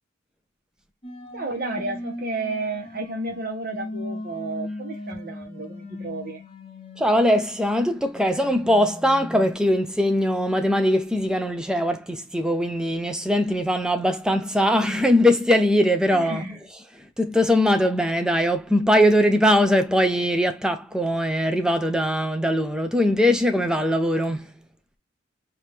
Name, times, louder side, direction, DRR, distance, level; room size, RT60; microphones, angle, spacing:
sound 1, 1.0-9.5, left 1 dB, 30° left, 0.9 m, -38 dB
voice 1, 1.3-6.4 16.1-16.6, right 2 dB, 45° right, 1.4 m, -32 dB
voice 2, 7.0-16.4 17.0-24.5, equal, 5° right, 0.6 m, -21 dB
4.7 x 2.8 x 3.5 m
head